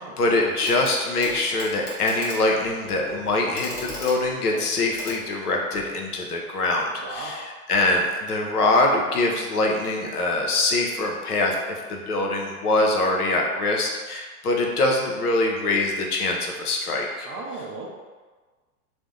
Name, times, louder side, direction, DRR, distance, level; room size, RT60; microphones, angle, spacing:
voice 1, 0.0-7.4 7.7-17.3, left 2 dB, 80° left, 0 dB, 0.7 m, -24 dB
Clock, 0.6-1.0 1.2-5.9 7.1-7.2, left 1 dB, 20° left, 0.8 m, -38 dB
voice 2, 7.0-7.3 17.2-17.9, right 3 dB, 30° right, -3 dB, 0.5 m, -36 dB
2.5 x 2.0 x 3.7 m, 1.4 s
figure-of-eight pair, 95°, 45 cm